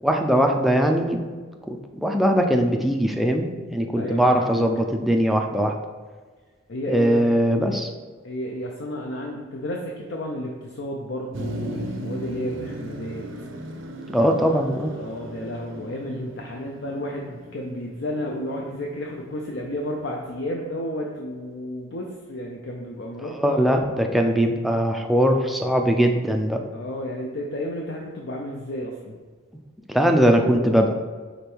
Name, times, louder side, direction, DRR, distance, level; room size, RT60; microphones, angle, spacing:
voice 1, 0.0-1.3 1.7-5.7 6.9-7.9 14.1-14.9 23.2-26.6 29.9-30.9, equal, ahead, 3 dB, 0.4 m, -21 dB
voice 2, 3.9-4.6 6.7-7.2 7.7-7.8 8.2-13.3 14.9-23.6 26.7-29.2, left 1 dB, 60° left, 0 dB, 0.6 m, -32 dB
Motor vehicle (road), 11.3-20.3, right 1 dB, 70° right, 0.7 m, -37 dB
5.2 x 4.3 x 4.5 m, 1.5 s
head